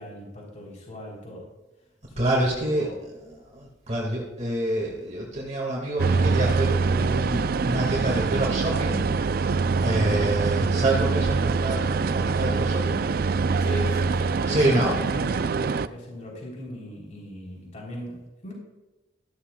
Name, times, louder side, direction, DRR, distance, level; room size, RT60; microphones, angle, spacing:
voice 1, 0.0-1.5 2.1-3.0 9.5-9.8 13.6-18.5, left 1 dB, 45° left, -3 dB, 3.5 m, -38 dB
voice 2, 2.2-2.9 3.5-9.0 9.4-9.5 9.8-13.0 14.5-14.9, right 1 dB, 40° right, -2 dB, 2.0 m, -27 dB
sound 1, 6.0-15.9, right 4 dB, 55° right, 0.4 m, -24 dB
14.0 x 12.5 x 2.3 m, 1.1 s
head